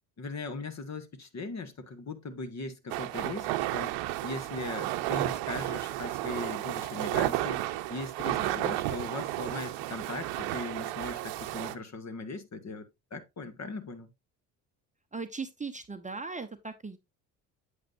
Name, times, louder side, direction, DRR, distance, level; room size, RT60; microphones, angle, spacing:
voice 1, 0.2-3.9 4.2-7.6 7.9-14.1, left 3 dB, 35° left, 1.7 m, -39 dB
sound 1, 2.9-11.7, right 16 dB, 70° right, 0.9 m, -32 dB
voice 2, 8.3-8.6 15.1-17.0, right 4 dB, 15° right, 0.9 m, -38 dB
8.5 x 8.3 x 2.6 m
hypercardioid pair, 65°, 46 cm